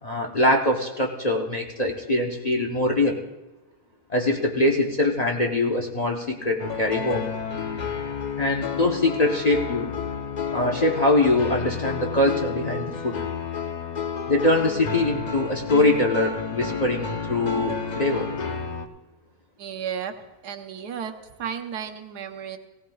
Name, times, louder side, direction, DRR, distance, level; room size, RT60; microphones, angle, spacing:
voice 1, 0.0-3.2 4.1-7.3 8.4-9.9 10.5-13.2 14.3-18.3, left 2 dB, 35° left, 1 dB, 0.8 m, -23 dB
sound 1, 6.6-18.9, left 6 dB, 60° left, 0.4 m, -31 dB
voice 2, 19.6-20.1 20.4-21.1 21.4-22.6, right 8 dB, 85° right, 6 dB, 1.4 m, -33 dB
18.0 x 16.5 x 2.3 m, 1.0 s
omnidirectional pair, 1.7 m